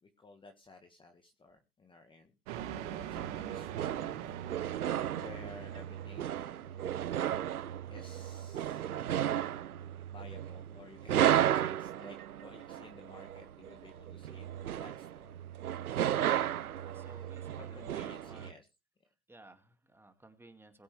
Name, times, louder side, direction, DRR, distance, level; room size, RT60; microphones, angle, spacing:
voice 1, 0.0-2.4 2.8-4.4 4.6-6.8 7.9-8.9 10.1-15.4 16.9-17.1 17.5-18.7, left 3 dB, 10° left, 5 dB, 1.5 m, -55 dB
sound 1, 2.5-7.0, right 10 dB, 55° right, 2.3 m, -44 dB
sound 2, 3.1-18.5, right 11 dB, 85° right, 0.7 m, -34 dB
voice 2, 16.8-18.6 19.3-20.8, right 2 dB, 5° right, 7 dB, 2.1 m, -57 dB
21.5 x 8.4 x 3.3 m, 0.28 s
hypercardioid pair, 105°, 43 cm